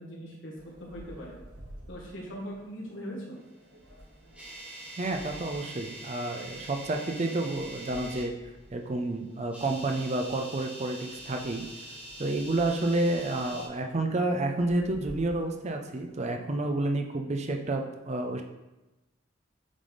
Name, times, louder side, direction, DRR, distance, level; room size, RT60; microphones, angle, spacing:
voice 1, 0.0-1.4 1.9-3.4, equal, 70° left, -3 dB, 1.6 m, -40 dB
sound 1, 0.5-16.2, right 1 dB, 70° right, 1.2 m, -53 dB
sound 2, 3.9-8.3 9.4-13.7, right 1 dB, 5° right, 1.2 m, -44 dB
voice 2, 5.0-8.3 8.7-11.6 12.2-18.4, right 2 dB, 35° right, 3 dB, 0.5 m, -30 dB
7.2 x 3.4 x 3.9 m, 1.0 s
head